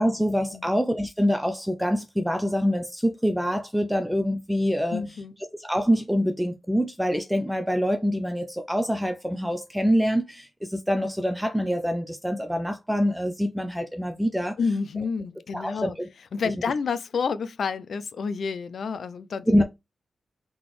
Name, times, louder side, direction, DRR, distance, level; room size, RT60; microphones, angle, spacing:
voice 1, 0.0-5.0 5.6-14.6 15.5-15.9 19.5-19.6, equal, 5° right, 0.6 m, -25 dB
voice 2, 4.9-5.3 14.6-16.0 16.3-19.5, left 5 dB, 70° left, 0.5 m, -29 dB
4.0 x 3.8 x 3.1 m
wide cardioid pair, 110°, 0 cm